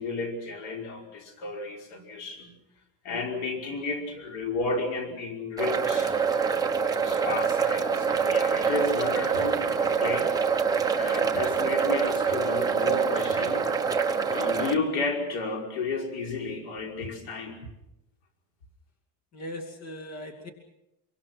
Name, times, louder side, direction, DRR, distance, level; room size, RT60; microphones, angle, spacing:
voice 1, 0.0-2.5 3.0-6.1 7.0-10.7 11.0-13.7 14.3-17.6, left 3 dB, 90° left, 2 dB, 5.4 m, -32 dB
sound 1, 5.6-14.8, right 6 dB, 10° right, 1.0 m, -25 dB
voice 2, 19.3-20.5, equal, 35° left, 5 dB, 2.5 m, -39 dB
26.0 x 24.0 x 6.1 m, 0.86 s
cardioid pair, 170°, 47 cm